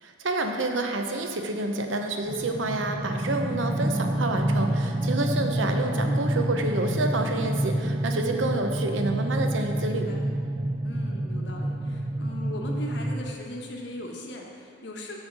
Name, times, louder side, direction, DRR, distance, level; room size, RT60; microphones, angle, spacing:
voice 1, 0.0-10.1, right 2 dB, 75° right, 4 dB, 0.7 m, -28 dB
sound 1, 2.2-13.3, right 1 dB, 25° right, 0.4 m, -28 dB
voice 2, 5.9-6.3 9.8-10.2 10.8-15.2, left 1 dB, 65° left, 0 dB, 1.0 m, -39 dB
7.1 x 6.3 x 5.2 m, 2.4 s
head